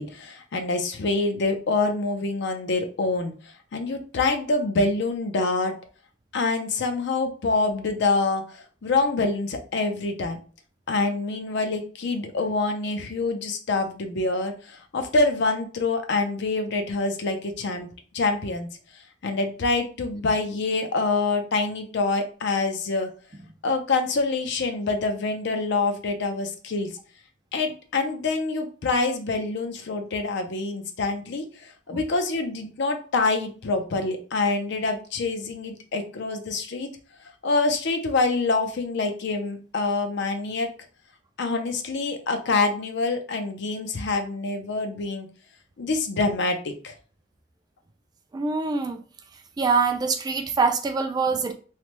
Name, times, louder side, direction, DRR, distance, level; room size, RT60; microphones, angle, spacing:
voice 1, 0.0-3.3 3.7-5.7 6.3-10.4 10.9-18.7 19.2-23.1 23.6-26.9 27.5-31.4 31.9-36.9 37.4-40.7 41.4-45.3 45.8-46.9, left 3 dB, 65° left, 6 dB, 0.5 m, -26 dB
voice 2, 48.3-49.0 49.6-51.5, right 4 dB, 20° right, 6 dB, 0.3 m, -24 dB
3.2 x 2.0 x 2.9 m, 0.39 s
head